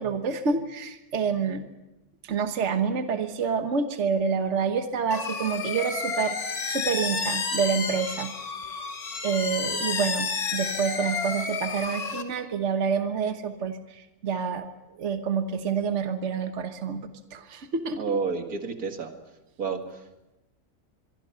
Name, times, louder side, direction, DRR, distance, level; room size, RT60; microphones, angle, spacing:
voice 1, 0.0-1.7 2.2-8.3 8.7-8.8 9.2-14.7 14.9-18.1, right 6 dB, 55° right, 7 dB, 1.5 m, -28 dB
sound 1, 5.1-12.2, left 5 dB, 85° left, 2.3 m, -31 dB
voice 2, 18.0-19.1 19.6-20.0, right 5 dB, 85° right, 5 dB, 2.5 m, -30 dB
25.0 x 23.5 x 5.7 m, 0.96 s
omnidirectional pair, 1.5 m